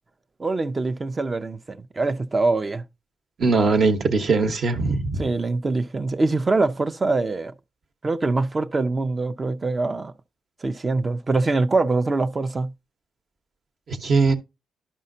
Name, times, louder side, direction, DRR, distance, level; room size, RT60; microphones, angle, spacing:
voice 1, 0.4-2.8 5.2-7.5 8.0-10.1 10.6-12.7, right 3 dB, 25° right, 0.6 m, -24 dB
voice 2, 3.4-5.3 13.9-14.3, right 4 dB, 45° right, 1.1 m, -20 dB
11.5 x 5.5 x 2.6 m
cardioid pair, 90°, 0 cm